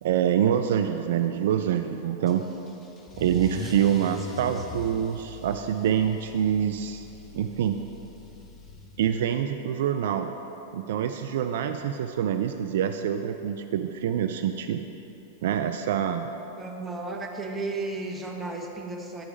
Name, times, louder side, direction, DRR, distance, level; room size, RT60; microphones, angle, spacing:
voice 1, 0.0-2.4 3.2-7.1 7.3-7.8 9.0-10.3 10.7-14.8 15.4-16.3, right 9 dB, 70° right, 7 dB, 0.3 m, -26 dB
Car / Engine starting / Accelerating revving vroom, 2.3-9.4, left 2 dB, 20° left, 0.9 m, -42 dB
voice 2, 16.6-19.2, right 3 dB, 15° right, 1 dB, 1.0 m, -34 dB
8.9 x 4.8 x 5.1 m, 2.9 s
hypercardioid pair, 105°, 0 cm